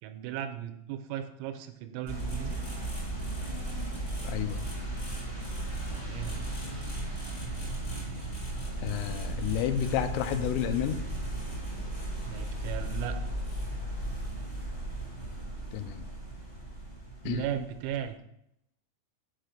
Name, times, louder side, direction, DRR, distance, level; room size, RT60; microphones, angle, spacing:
voice 1, 0.0-2.6 5.9-6.5 12.3-13.2 17.2-18.2, right 10 dB, 85° right, 8 dB, 3.2 m, -36 dB
sound 1, 2.1-18.1, right 1 dB, 25° left, 1.3 m, -36 dB
voice 2, 4.2-4.7 8.8-11.0 15.7-16.0 17.3-17.4, left 10 dB, 80° left, 9 dB, 3.1 m, -30 dB
7.5 x 4.8 x 6.4 m, 0.78 s
omnidirectional pair, 6.0 m